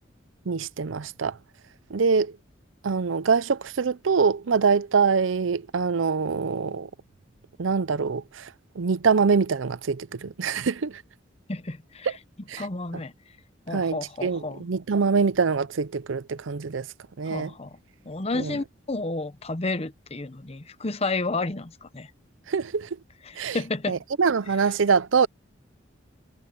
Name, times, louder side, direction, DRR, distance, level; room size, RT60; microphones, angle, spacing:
voice 1, 0.5-1.4 1.9-2.4 2.8-6.9 7.6-8.5 8.8-11.0 12.5-12.7 13.7-16.9 17.2-17.5 18.3-18.6 22.5-22.9 23.4-23.6 23.9-25.3, right 5 dB, 90° right, 0.6 m, -24 dB
voice 2, 11.5-12.1 12.6-13.1 13.7-14.6 17.3-17.8 18.0-22.1 23.3-24.0, left 3 dB, 30° left, 0.9 m, -31 dB
head